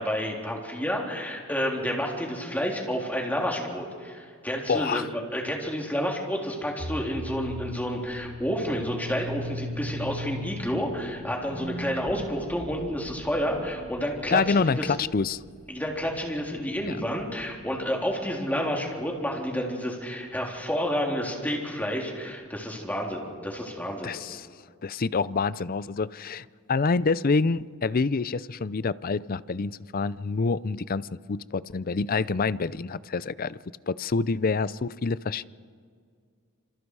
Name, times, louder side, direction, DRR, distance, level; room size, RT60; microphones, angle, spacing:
voice 1, 0.0-14.9 15.7-24.1, equal, 10° left, 0 dB, 3.6 m, -30 dB
voice 2, 4.7-5.0 14.3-15.4 16.8-17.0 24.0-24.5 24.8-33.6 33.9-35.5, left 4 dB, 40° left, 18 dB, 0.5 m, -27 dB
sound 1, 6.8-18.0, equal, 50° right, 1.9 m, -39 dB
28.0 x 27.0 x 4.8 m, 2.1 s
head